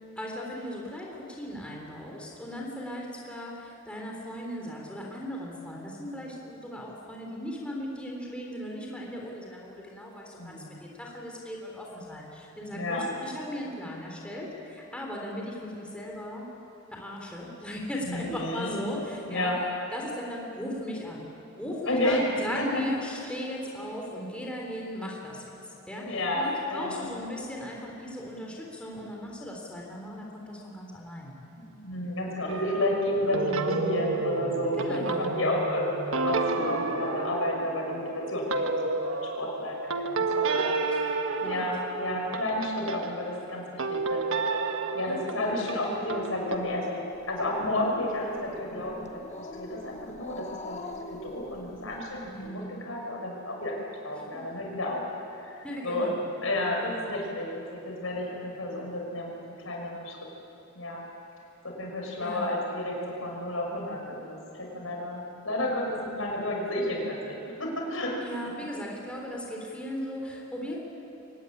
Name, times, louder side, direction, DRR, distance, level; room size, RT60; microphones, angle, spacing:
voice 1, 0.2-16.4 16.9-19.5 19.9-21.3 21.6-25.5 25.9-31.3 34.8-35.3 40.6-40.8 41.4-41.6 45.1-45.2 52.2-52.9 54.1-54.2 55.6-56.2 56.8-57.1 62.2-62.5 68.2-70.8, left 1 dB, 5° left, -2 dB, 3.8 m, -37 dB
voice 2, 10.4-10.8 12.7-13.0 18.0-18.8 19.2-19.6 21.9-22.8 26.1-27.0 31.6-36.0 36.2-40.7 41.4-44.3 44.9-47.0 47.3-50.8 51.2-53.7 54.0-55.0 55.4-56.1 56.4-60.2 60.7-61.1 61.6-68.1 68.4-68.5, left 1 dB, 80° left, -1 dB, 6.2 m, -31 dB
sound 1, 32.5-43.1 43.8-46.6, right 3 dB, 75° right, 1.4 m, -31 dB
Growling, 47.1-52.5, left 2 dB, 35° left, 1.3 m, -43 dB
23.5 x 18.5 x 9.9 m, 3.0 s
head